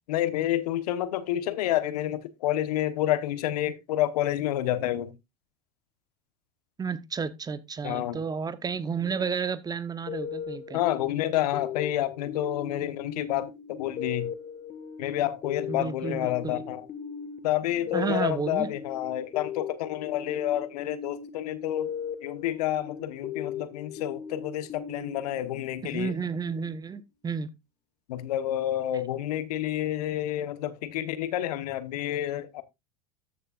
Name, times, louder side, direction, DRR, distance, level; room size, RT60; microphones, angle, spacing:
voice 1, 0.1-5.1 7.8-8.2 10.7-14.3 15.0-16.9 17.4-21.9 22.2-26.1 28.1-32.6, left 13 dB, 75° left, 1.2 m, -29 dB
voice 2, 6.8-10.8 15.7-16.6 17.9-18.7 25.8-27.5, right 5 dB, 20° right, 0.9 m, -32 dB
sound 1, 10.1-26.4, left 7 dB, 40° left, 1.6 m, -39 dB
14.0 x 6.7 x 2.4 m
hypercardioid pair, 90°, 20 cm